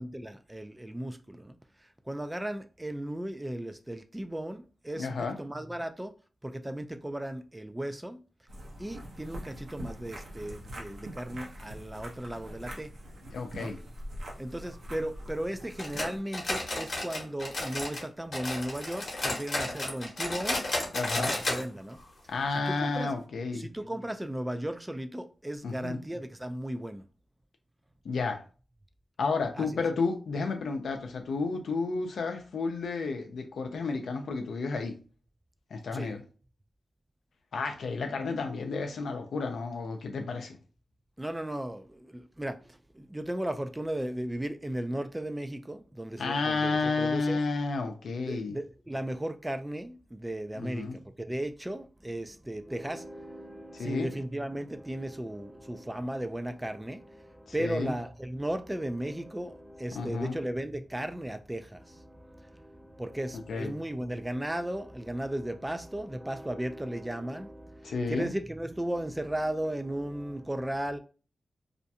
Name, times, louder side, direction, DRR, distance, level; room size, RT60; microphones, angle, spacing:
voice 1, 0.0-6.1 6.4-8.2 8.8-12.9 13.5-13.7 14.4-20.6 21.2-22.0 22.5-23.1 23.5-27.0 29.6-29.8 35.9-36.1 41.2-47.4 48.3-71.0, right 1 dB, 15° right, 0.3 m, -36 dB
voice 2, 5.0-5.4 13.3-13.8 20.9-21.3 22.3-23.7 25.6-26.0 28.0-28.4 29.2-35.0 35.7-36.2 37.5-40.6 46.2-48.6 50.5-51.0 53.7-54.1 57.6-57.9 59.9-60.4 63.5-63.7 67.8-68.3, left 4 dB, 85° left, 0.5 m, -31 dB
sound 1, 8.5-16.2, equal, 80° right, 0.7 m, -43 dB
sound 2, 15.8-18.1 18.3-21.6 21.9-22.0 22.4-22.5 23.1-23.2, left 2 dB, 60° left, 0.9 m, -33 dB
2.5 x 2.2 x 2.7 m
cardioid pair, 65°, 0 cm